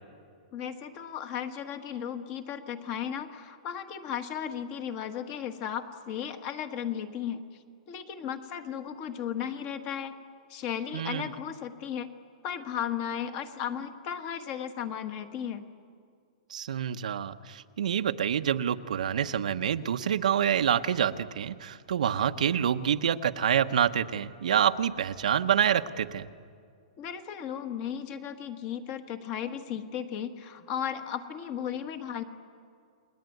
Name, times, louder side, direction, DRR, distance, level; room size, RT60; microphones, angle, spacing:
voice 1, 0.5-7.4 7.9-10.1 10.5-12.1 12.4-15.6 27.0-32.2, left 9 dB, 25° left, 8 dB, 1.4 m, -35 dB
voice 2, 10.9-11.3 16.5-26.3, right 9 dB, 75° right, 9 dB, 1.0 m, -27 dB
29.5 x 21.0 x 9.4 m, 2.2 s
hypercardioid pair, 175°, 4 cm